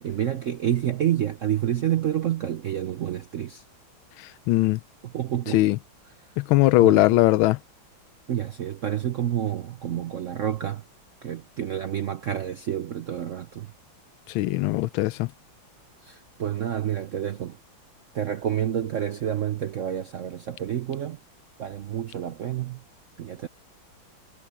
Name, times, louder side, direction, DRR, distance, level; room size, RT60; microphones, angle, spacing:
voice 1, 0.0-3.6 5.0-5.6 6.8-7.1 8.3-10.8 11.2-13.7 16.0-17.6 18.1-21.2 21.6-22.8 23.2-23.5, right 10 dB, 70° right, 0.7 m, -29 dB
voice 2, 4.5-4.8 5.5-5.8 6.4-7.6 14.3-15.3, left 17 dB, 90° left, 1.4 m, -20 dB
omnidirectional pair, 2.2 m